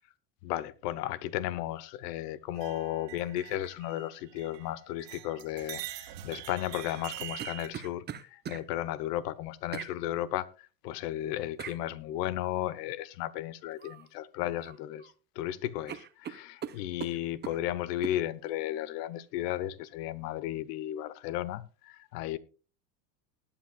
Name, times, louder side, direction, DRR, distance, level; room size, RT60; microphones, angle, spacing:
voice 1, 0.4-10.5 10.8-15.1 15.4-22.4, left 13 dB, 75° left, 1.1 m, -34 dB
sound 1, 2.5-4.7 5.0-7.7, right 14 dB, 85° right, 2.2 m, -44 dB
sound 2, 6.9-8.6 9.7-9.9 11.6-11.8 13.8-14.1 14.4-15.1 15.4-15.5 15.9-17.6 18.0-18.2, right 8 dB, 20° right, 0.7 m, -41 dB
20.0 x 9.0 x 2.3 m
supercardioid pair, 130°, 48 cm